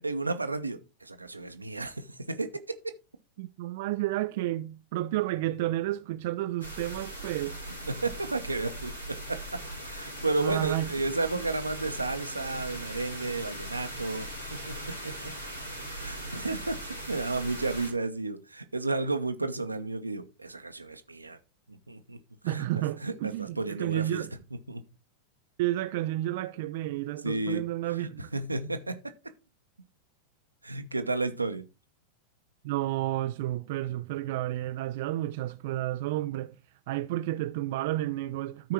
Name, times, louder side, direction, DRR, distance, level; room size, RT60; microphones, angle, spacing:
voice 1, 0.0-2.8 7.8-15.3 15.9-21.4 21.7-22.2 22.4-24.2 24.7-24.8 27.2-27.6 28.0-29.0 30.6-31.6, right 3 dB, 80° right, 1.0 m, -33 dB
voice 2, 3.4-7.6 10.4-10.9 22.4-24.3 25.6-28.3 28.6-28.7 32.6-36.6 36.9-38.7, right 15 dB, 50° right, 0.5 m, -31 dB
sound 1, 6.6-17.9, right 1 dB, 80° left, 3.4 m, -40 dB
13.0 x 4.7 x 4.3 m
figure-of-eight pair, 90°, 0 cm